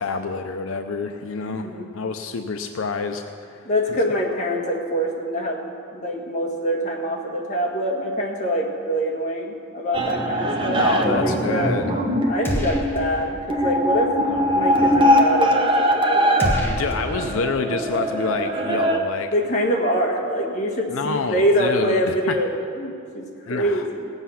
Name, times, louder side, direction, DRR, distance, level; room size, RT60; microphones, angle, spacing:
voice 1, 0.0-3.7 10.7-12.0 14.3-14.6 16.6-19.3 20.9-22.4 23.5-23.9, left 4 dB, 75° left, 6 dB, 0.5 m, -28 dB
voice 2, 1.4-1.9 3.6-11.8 12.3-14.1 14.5-16.5 19.3-24.1, equal, 35° left, -1 dB, 1.8 m, -25 dB
sound 1, 9.9-19.0, equal, 25° right, 1.0 m, -21 dB
sound 2, 12.5-13.3 13.6-13.7 16.4-17.7, equal, 10° left, 1.3 m, -27 dB
18.5 x 8.0 x 5.7 m, 2.5 s
head